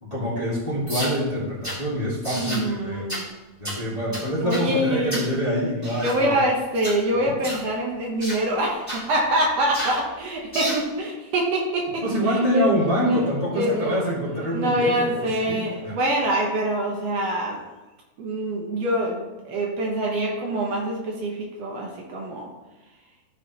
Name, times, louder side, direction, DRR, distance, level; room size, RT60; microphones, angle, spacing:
voice 1, 0.0-3.1 3.6-6.3 7.2-7.4 12.0-15.9, equal, 15° left, -7 dB, 1.7 m, -25 dB
sound 1, 0.9-1.2 1.6-1.8 2.2-2.7 3.1-3.3 3.6-3.8 4.1-4.7 5.1-5.3 5.8-6.2 6.7-7.0 7.4-7.7 8.2-8.4 8.9-9.0 9.7-10.0 10.5-10.9, equal, 5° right, 2.3 m, -31 dB
voice 2, 2.4-3.3 4.4-5.2 6.0-12.7 13.1-14.0 14.5-17.7 18.2-22.5, right 1 dB, 65° right, -1 dB, 2.0 m, -25 dB
14.0 x 4.8 x 3.0 m, 1.1 s
omnidirectional pair, 3.3 m